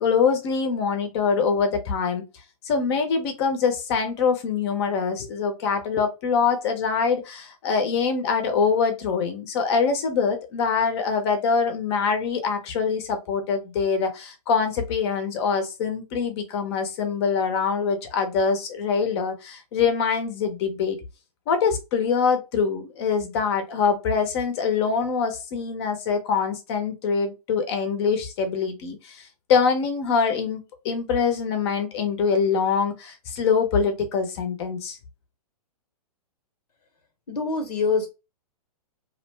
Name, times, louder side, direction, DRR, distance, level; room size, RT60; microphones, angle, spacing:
voice 1, 0.0-2.2 2.6-21.0 21.5-35.0, left 5 dB, 45° left, 6 dB, 0.6 m, -24 dB
voice 2, 37.3-38.1, left 4 dB, 90° left, 5 dB, 0.7 m, -24 dB
2.5 x 2.1 x 3.1 m, 0.27 s
hypercardioid pair, 135°, 20 cm